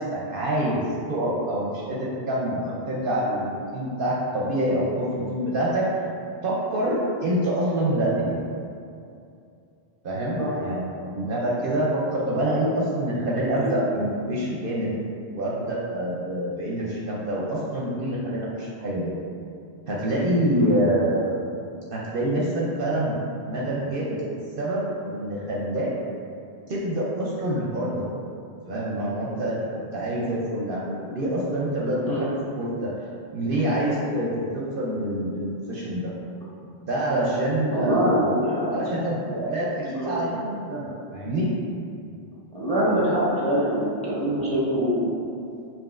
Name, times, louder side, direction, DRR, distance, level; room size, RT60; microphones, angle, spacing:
voice 1, 0.0-5.8 6.4-8.3 10.0-14.9 15.3-19.1 19.9-21.4 21.9-23.2 23.5-24.2 24.6-25.9 26.7-28.1 28.7-29.6 29.9-32.3 32.6-32.9 33.3-36.1 36.8-38.3 38.7-41.5, right 1 dB, 60° right, -5 dB, 0.7 m, -26 dB
voice 2, 37.7-38.9 39.9-40.2 42.5-45.1, equal, 5° left, -8 dB, 0.8 m, -24 dB
5.2 x 2.9 x 2.4 m, 2.5 s
omnidirectional pair, 1.1 m